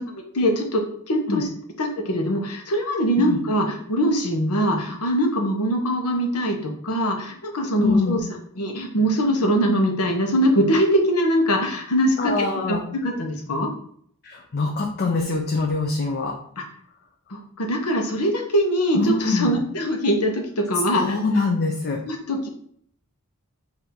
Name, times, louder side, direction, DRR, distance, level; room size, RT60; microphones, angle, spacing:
voice 1, 0.0-1.4 1.8-8.2 8.6-13.7 16.6-16.7 17.3-21.2 22.0-22.5, equal, 80° left, 2 dB, 0.9 m, -22 dB
voice 2, 7.8-8.2 12.2-12.8 14.2-16.3 18.9-19.5 20.9-22.0, left 3 dB, 45° left, 1 dB, 0.5 m, -24 dB
4.3 x 2.7 x 3.6 m, 0.63 s
head